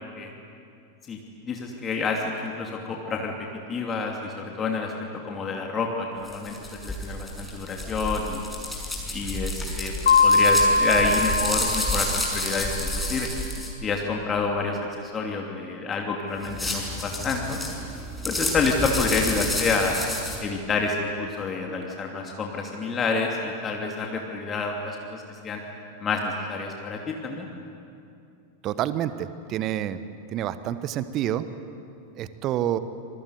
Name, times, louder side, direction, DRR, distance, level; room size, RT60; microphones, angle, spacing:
voice 1, 1.4-3.3 3.7-4.9 5.2-8.4 9.1-13.3 13.8-17.6 18.2-20.0 20.4-25.6 26.0-27.5, left 4 dB, 25° left, 1 dB, 2.8 m, -28 dB
sound 1, 6.2-13.7 16.4-20.4, left 1 dB, 5° left, 6.1 m, -30 dB
Mallet percussion, 10.1-12.7, left 3 dB, 65° left, 1.5 m, -21 dB
voice 2, 28.6-30.0 30.3-31.5 32.2-32.8, right 11 dB, 35° right, 13 dB, 1.2 m, -28 dB
26.5 x 22.5 x 9.6 m, 2.6 s
figure-of-eight pair, 90°, 0 cm